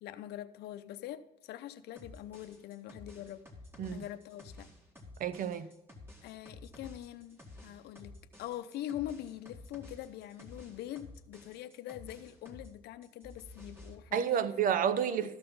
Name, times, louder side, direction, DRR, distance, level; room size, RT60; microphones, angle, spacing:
voice 1, 0.0-3.4 3.9-4.7 6.2-14.5 15.1-15.4, left 12 dB, 75° left, 0.6 m, -43 dB
sound 1, 2.0-12.7 13.0-14.0, left 2 dB, 15° right, 1.9 m, -52 dB
voice 2, 5.2-5.7 14.1-15.4, right 8 dB, 55° right, 0.7 m, -30 dB
13.5 x 5.8 x 5.4 m
cardioid pair, 110°, 17 cm